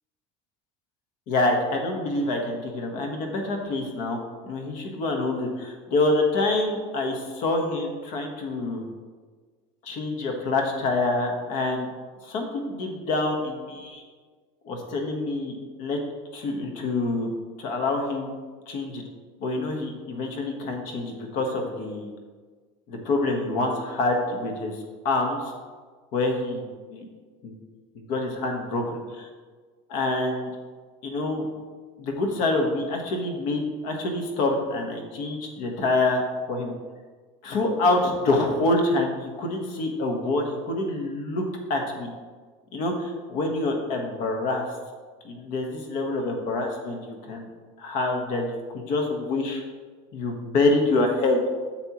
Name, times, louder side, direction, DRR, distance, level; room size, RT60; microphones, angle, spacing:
voice 1, 1.3-8.9 9.8-11.9 12.2-14.0 14.6-15.5 15.8-16.0 16.3-17.3 17.6-18.3 18.7-19.0 19.4-22.1 22.9-24.7 25.0-25.5 26.1-27.1 27.4-27.5 28.1-29.3 29.9-30.5 31.0-31.5 32.0-36.2 36.5-36.7 37.4-41.4 41.7-42.1 42.7-44.6 45.2-47.4 47.8-49.6 50.1-51.4, left 2 dB, 55° left, 2 dB, 1.3 m, -26 dB
8.7 x 7.1 x 3.0 m, 1.5 s
cardioid pair, 170°, 16 cm